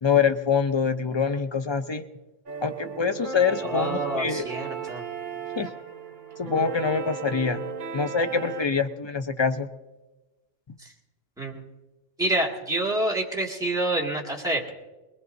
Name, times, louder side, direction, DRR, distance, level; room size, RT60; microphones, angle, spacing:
voice 1, 0.0-2.0 2.6-4.5 5.6-5.7 6.4-7.6 7.9-9.7, left 6 dB, 35° left, 7 dB, 0.4 m, -25 dB
sound 1, 2.5-8.6, right 6 dB, 45° right, 1.0 m, -35 dB
voice 2, 3.6-5.0 10.8-10.9 11.4-11.6 12.2-14.7, right 1 dB, 5° right, -2 dB, 2.1 m, -27 dB
21.0 x 20.0 x 2.7 m, 1.1 s
omnidirectional pair, 1.3 m